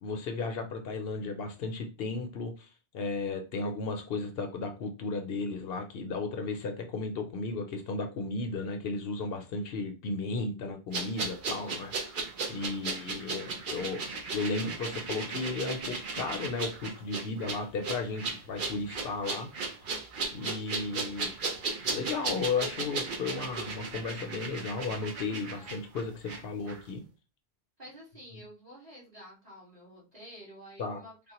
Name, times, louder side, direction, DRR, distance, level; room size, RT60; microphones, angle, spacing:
voice 1, 0.0-2.7 2.9-11.9 12.2-14.0 14.3-19.5 20.3-21.3 21.9-27.0 30.8-31.0, left 3 dB, 70° left, 5 dB, 0.8 m, -34 dB
sound 1, 10.9-26.4 26.7-26.8, right 3 dB, 55° right, 0.8 m, -36 dB
voice 2, 11.5-13.0 25.5-25.9 27.8-31.3, equal, 40° right, -6 dB, 1.8 m, -51 dB
3.6 x 2.1 x 2.9 m, 0.32 s
omnidirectional pair, 1.1 m